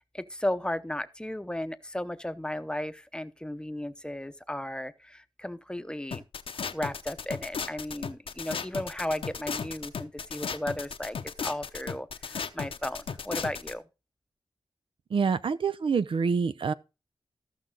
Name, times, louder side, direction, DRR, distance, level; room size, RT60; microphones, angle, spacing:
voice 1, 0.0-6.2 6.7-13.8, left 1 dB, 10° left, 0.8 m, -35 dB
sound 1, 6.1-13.7, left 6 dB, 75° left, 0.8 m, -35 dB
voice 2, 15.1-16.7, right 5 dB, 65° right, 0.5 m, -26 dB
14.5 x 6.0 x 3.9 m
wide cardioid pair, 75°, 10 cm